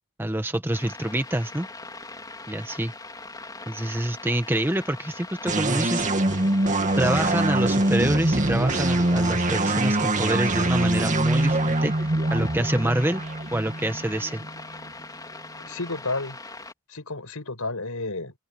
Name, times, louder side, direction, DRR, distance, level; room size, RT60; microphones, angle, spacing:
voice 1, 0.2-1.7 2.5-2.9 3.7-6.1 7.0-11.9 12.3-13.2 13.5-14.4, right 1 dB, 10° right, 1.0 m, -26 dB
sound 1, 0.7-16.7, left 3 dB, 20° left, 3.8 m, -41 dB
sound 2, 5.5-14.9, right 2 dB, 35° right, 2.1 m, -24 dB
voice 2, 15.6-16.4 16.9-18.3, left 2 dB, 75° left, 5.2 m, -31 dB
open air
head